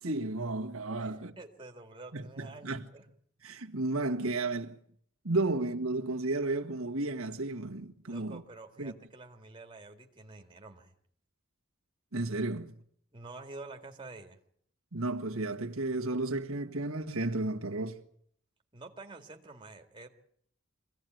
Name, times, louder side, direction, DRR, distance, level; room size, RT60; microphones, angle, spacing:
voice 1, 0.0-1.3 2.1-2.9 3.4-4.7 5.2-8.4 8.8-8.9 12.1-12.7 14.9-18.0, right 2 dB, 90° right, 1.7 m, -33 dB
voice 2, 1.0-3.1 8.1-10.9 13.1-14.4 18.7-20.1, right 3 dB, 25° right, 2.1 m, -48 dB
24.0 x 16.5 x 9.3 m
head